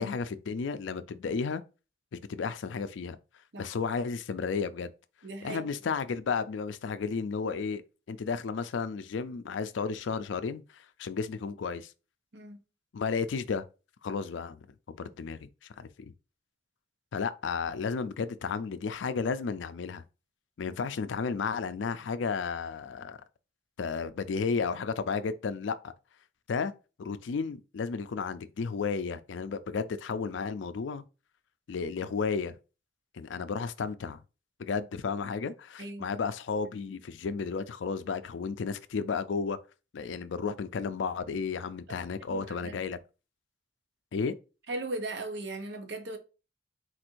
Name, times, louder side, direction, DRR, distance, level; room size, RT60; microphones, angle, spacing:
voice 1, 0.0-1.6 2.1-3.2 3.6-4.9 5.4-7.8 8.1-11.9 12.9-13.6 14.0-15.5 15.8-16.1 17.1-20.0 20.6-23.2 23.8-25.9 26.5-26.7 27.0-31.0 31.7-32.6 33.1-34.2 34.6-39.6 39.9-43.0 44.1-44.3, left 5 dB, 80° left, 0.4 m, -33 dB
voice 2, 5.2-5.7 12.3-12.6 35.8-36.1 41.9-42.8 44.7-46.2, right 2 dB, 65° right, 0.9 m, -38 dB
4.1 x 2.5 x 4.4 m
head